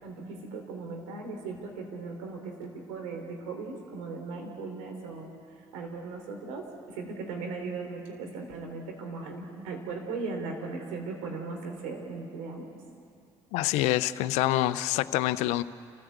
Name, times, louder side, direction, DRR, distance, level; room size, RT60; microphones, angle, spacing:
voice 1, 0.0-5.3 5.7-12.7, right 4 dB, 85° right, 2 dB, 3.4 m, -38 dB
voice 2, 13.5-15.6, left 15 dB, 80° left, 15 dB, 0.6 m, -26 dB
29.5 x 15.0 x 8.1 m, 2.5 s
hypercardioid pair, 60°, 11 cm